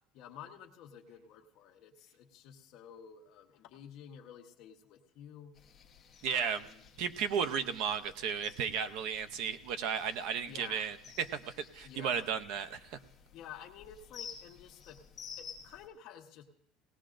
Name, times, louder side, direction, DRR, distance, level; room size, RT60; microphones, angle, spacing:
voice 1, 0.1-5.5 6.3-6.8 10.5-10.9 11.8-12.3 13.3-15.0 15.4-16.4, left 9 dB, 45° left, 2 dB, 1.1 m, -51 dB
sound 1, 5.5-15.9, left 7 dB, 20° left, 1.0 m, -53 dB
voice 2, 6.2-6.6 7.0-13.0, right 7 dB, 55° right, 11 dB, 0.6 m, -34 dB
18.5 x 17.5 x 2.5 m, 0.79 s
cardioid pair, 180°, 0 cm